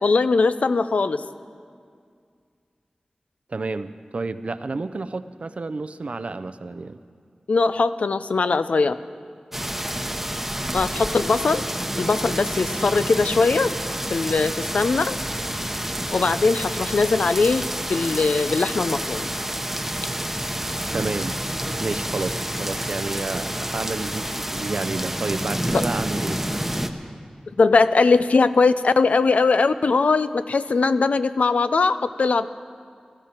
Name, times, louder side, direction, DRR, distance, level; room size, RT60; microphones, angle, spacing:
voice 1, 0.0-1.2 7.5-9.0 10.7-11.6 12.0-13.8 14.1-15.2 16.1-17.6 17.9-19.3 25.7-25.8 27.6-32.5, left 4 dB, 85° left, 12 dB, 0.5 m, -20 dB
voice 2, 3.5-7.0 20.9-21.4 21.8-26.4, right 3 dB, 65° right, 11 dB, 0.5 m, -30 dB
sound 1, 9.5-26.9, right 1 dB, 10° right, 0.9 m, -29 dB
18.5 x 14.5 x 4.4 m, 2.2 s
wide cardioid pair, 60°, 2 cm